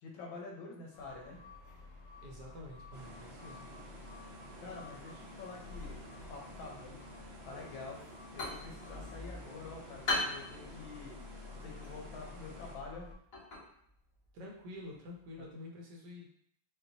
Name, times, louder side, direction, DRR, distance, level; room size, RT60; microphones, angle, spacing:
voice 1, 0.0-1.4 4.6-7.0 7.4-8.0 8.3-11.2 11.6-13.1 15.4-15.5, left 3 dB, 85° left, -1 dB, 1.7 m, -47 dB
sound 1, 0.9-13.1, left 3 dB, 65° left, 1.0 m, -51 dB
voice 2, 2.2-3.7 14.3-16.3, left 1 dB, 65° right, -1 dB, 1.3 m, -48 dB
sound 2, 2.9-12.8, equal, 50° right, 0.8 m, -52 dB
Ceramic Plate Set Down, 8.0-15.5, left 2 dB, 45° left, 1.9 m, -42 dB
5.8 x 2.4 x 2.7 m, 0.68 s
omnidirectional pair, 2.1 m